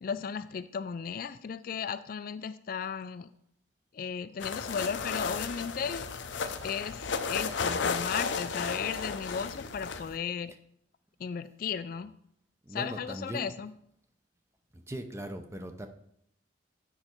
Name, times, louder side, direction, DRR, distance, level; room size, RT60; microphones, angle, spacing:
voice 1, 0.0-3.3 3.9-6.1 6.6-10.5 11.2-12.1 12.7-13.7, left 6 dB, 50° left, 13 dB, 0.3 m, -35 dB
sound 1, 4.4-10.2, left 5 dB, 75° left, 0.6 m, -34 dB
voice 2, 12.6-13.5 14.7-15.9, right 1 dB, 15° right, 7 dB, 0.6 m, -39 dB
8.7 x 5.5 x 4.5 m, 0.72 s
head